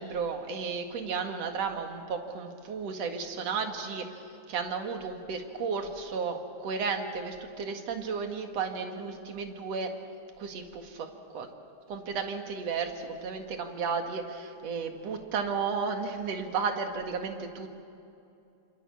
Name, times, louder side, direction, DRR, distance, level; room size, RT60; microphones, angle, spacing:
voice 1, 0.0-4.2 4.5-9.9 10.4-11.1 11.3-11.5 11.9-17.8, right 5 dB, 60° right, 4 dB, 2.9 m, -33 dB
27.5 x 27.0 x 7.2 m, 2.7 s
omnidirectional pair, 3.5 m